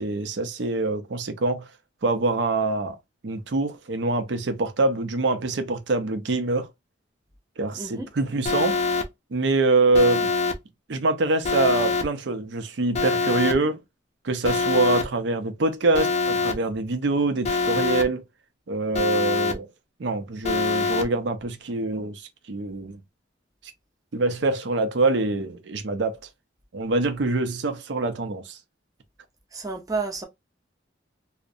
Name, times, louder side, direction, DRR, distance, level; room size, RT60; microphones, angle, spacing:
voice 1, 0.0-1.7 2.0-3.0 3.2-6.7 7.6-8.8 9.3-10.3 10.9-13.8 14.2-18.2 18.7-19.7 20.0-23.0 24.1-26.2 26.7-28.6, right 2 dB, 70° right, 0.5 m, -25 dB
voice 2, 7.8-8.1 29.5-30.2, right 3 dB, 20° right, 0.5 m, -30 dB
Alarm, 8.4-9.0 9.9-10.5 11.4-12.0 12.9-13.5 14.4-15.0 15.9-16.5 17.4-18.0 18.9-19.5 20.4-21.0, left 4 dB, 35° left, 0.4 m, -24 dB
2.5 x 2.0 x 2.6 m
head